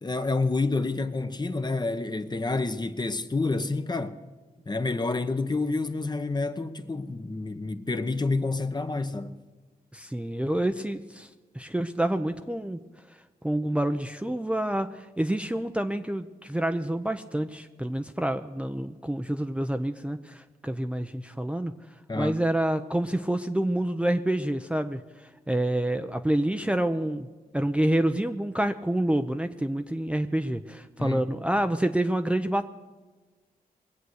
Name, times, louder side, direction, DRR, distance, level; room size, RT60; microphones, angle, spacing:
voice 1, 0.0-4.2 4.7-9.4 22.1-22.3 31.0-31.3, left 3 dB, 25° left, 0.9 m, -28 dB
voice 2, 9.9-11.3 11.5-12.8 13.4-21.7 22.2-25.0 25.5-27.3 27.5-32.7, right 1 dB, 5° right, 0.6 m, -27 dB
21.5 x 8.1 x 6.4 m
cardioid pair, 70°, 16 cm